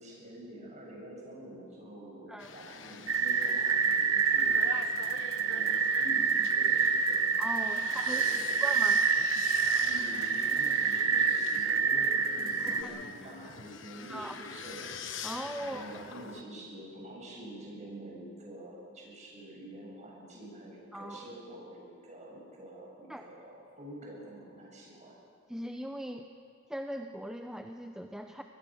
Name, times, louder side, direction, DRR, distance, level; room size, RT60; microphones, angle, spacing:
voice 1, 0.0-7.4 7.8-8.6 9.8-25.1, right 1 dB, 35° right, -3 dB, 7.9 m, -47 dB
sound 1, 2.4-16.4, left 6 dB, 65° left, 1.3 m, -45 dB
sound 2, 3.1-12.8, right 6 dB, 85° right, 1.5 m, -27 dB
voice 2, 7.4-8.3 8.6-9.0 12.6-13.3 14.1-14.4 15.2-15.8 20.9-21.3 23.1-23.3 25.5-26.3 26.7-28.4, equal, 5° right, 4 dB, 0.7 m, -40 dB
24.5 x 21.5 x 6.4 m, 2.2 s
head